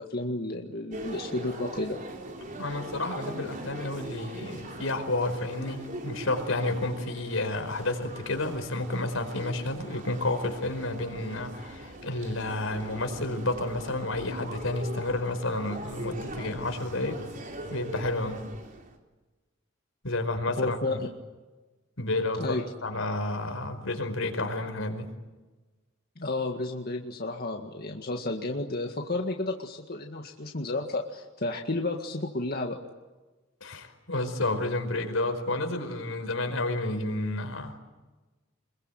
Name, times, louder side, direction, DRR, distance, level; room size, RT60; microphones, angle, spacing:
voice 1, 0.0-2.0 20.6-21.1 22.4-22.6 26.2-32.8, left 2 dB, 50° left, 3 dB, 1.9 m, -32 dB
sound 1, 0.9-18.9, right 1 dB, 40° right, 3.8 m, -41 dB
voice 2, 2.6-17.2 17.7-18.4 20.0-21.0 22.0-25.1 33.6-37.8, left 2 dB, 80° left, 7 dB, 4.7 m, -30 dB
26.5 x 22.5 x 9.3 m, 1.2 s
head